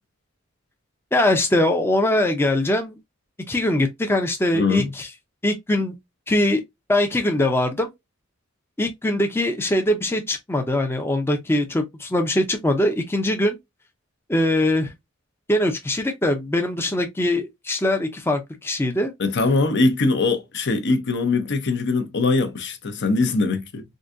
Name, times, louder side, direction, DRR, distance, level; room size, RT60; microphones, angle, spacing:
voice 1, 1.1-3.0 3.5-5.1 5.4-5.9 6.3-6.6 6.9-7.9 8.8-13.6 14.3-14.9 15.5-19.1, left 1 dB, 10° left, 0.5 m, -22 dB
voice 2, 4.5-4.9 19.2-23.8, left 3 dB, 55° left, 0.7 m, -22 dB
3.8 x 2.6 x 2.5 m
head